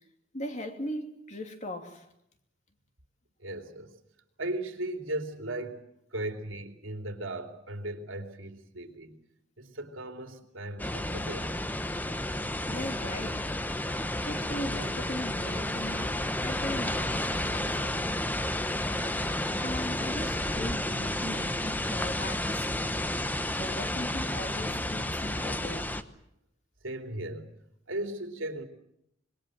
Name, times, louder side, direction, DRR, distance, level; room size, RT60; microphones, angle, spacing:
voice 1, 0.3-2.1 12.7-13.5 14.3-18.1 19.6-23.0 23.6-25.9, left 1 dB, 35° left, 2.8 m, -39 dB
voice 2, 3.4-4.0 4.4-5.8 6.1-9.2 9.6-11.5 26.8-27.5 27.9-28.6, right 1 dB, 85° right, 3.0 m, -37 dB
sound 1, 10.8-26.0, left 1 dB, 10° left, 1.0 m, -31 dB
25.5 x 22.0 x 7.6 m
head